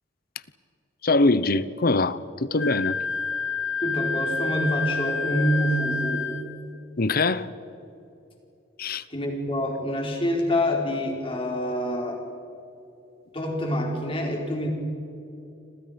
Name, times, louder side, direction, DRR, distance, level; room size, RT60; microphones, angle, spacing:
voice 1, 1.0-3.0 7.0-7.5 8.8-9.0, left 2 dB, 55° left, 16 dB, 0.9 m, -23 dB
Wind instrument woodwind instrument, 2.6-6.4, left 4 dB, 80° left, 1.8 m, -28 dB
voice 2, 3.8-6.3 9.1-12.2 13.3-14.7, equal, 30° left, 1 dB, 4.8 m, -26 dB
29.5 x 26.5 x 5.3 m, 2.9 s
head